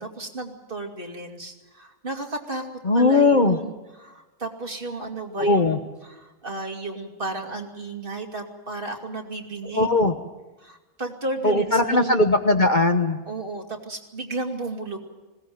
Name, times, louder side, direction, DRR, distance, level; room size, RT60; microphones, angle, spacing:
voice 1, 0.0-2.7 2.9-9.9 10.6-12.2 13.3-15.0, right 2 dB, 40° right, 2 dB, 2.7 m, -33 dB
voice 2, 2.8-3.6 5.4-5.8 9.7-10.1 11.4-13.2, left 2 dB, 35° left, 6 dB, 1.1 m, -19 dB
20.5 x 18.0 x 9.4 m, 1.2 s
omnidirectional pair, 1.4 m